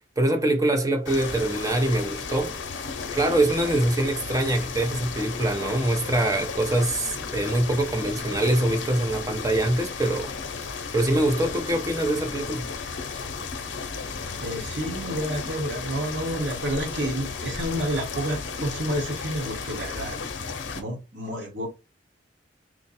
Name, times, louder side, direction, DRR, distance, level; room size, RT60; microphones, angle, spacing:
voice 1, 0.2-2.5 3.1-10.3 10.9-12.7, right 1 dB, 20° right, 0.6 m, -24 dB
sound 1, 1.0-20.8, left 5 dB, 80° left, 0.7 m, -34 dB
voice 2, 14.4-20.2 20.7-21.7, equal, 70° right, 1.4 m, -30 dB
3.3 x 2.2 x 4.1 m
head